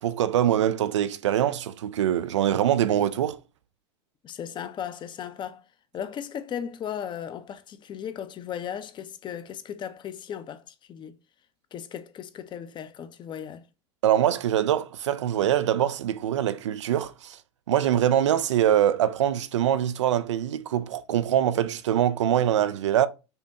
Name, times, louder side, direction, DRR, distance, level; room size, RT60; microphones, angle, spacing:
voice 1, 0.0-3.4 14.0-17.4 17.7-23.1, right 11 dB, 85° right, 0.4 m, -23 dB
voice 2, 4.2-5.6 5.9-11.2 11.7-13.7, left 9 dB, 30° left, 0.5 m, -36 dB
5.4 x 2.2 x 2.8 m
hypercardioid pair, 85°, 15 cm